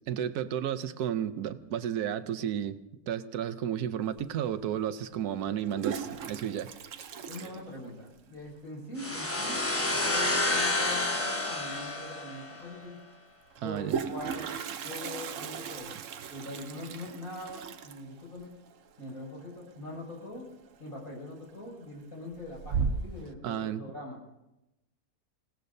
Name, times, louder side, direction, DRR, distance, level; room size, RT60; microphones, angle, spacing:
voice 1, 0.1-2.8 3.1-6.7 13.6-14.0 23.4-23.8, right 10 dB, 85° right, 11 dB, 1.3 m, -32 dB
Toilet flush, 4.2-4.3 5.5-8.3 8.6-8.7 8.9-9.0 9.3-9.7 11.4-11.5 11.9-12.0 13.5-20.2 20.5-20.9 21.4-21.9 22.3-23.3, right 6 dB, 60° right, 1.1 m, -37 dB
voice 2, 7.1-13.0 13.6-14.5 14.8-15.9 16.3-18.5 19.0-20.4 20.8-24.2, left 1 dB, 65° left, -4 dB, 6.6 m, -42 dB
sound 1, 9.0-12.7, left 2 dB, 10° left, 1.0 m, -29 dB
27.5 x 17.5 x 2.7 m, 0.93 s
omnidirectional pair, 1.6 m